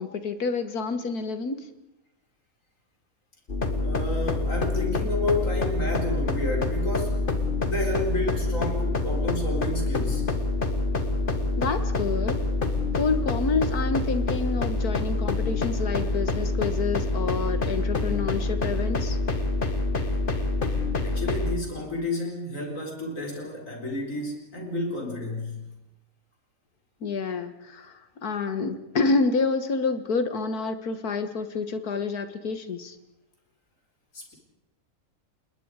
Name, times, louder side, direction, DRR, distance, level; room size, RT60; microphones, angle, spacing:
voice 1, 0.0-1.7 11.6-12.4 12.9-19.2 27.0-33.0, left 4 dB, 80° left, 10 dB, 2.0 m, -28 dB
sound 1, 3.5-21.6, left 2 dB, 35° left, 1.8 m, -26 dB
voice 2, 3.8-7.3 7.6-10.3 21.0-25.6 34.1-34.3, left 2 dB, 60° left, 1 dB, 4.9 m, -31 dB
30.0 x 20.0 x 4.9 m, 0.96 s
omnidirectional pair, 1.6 m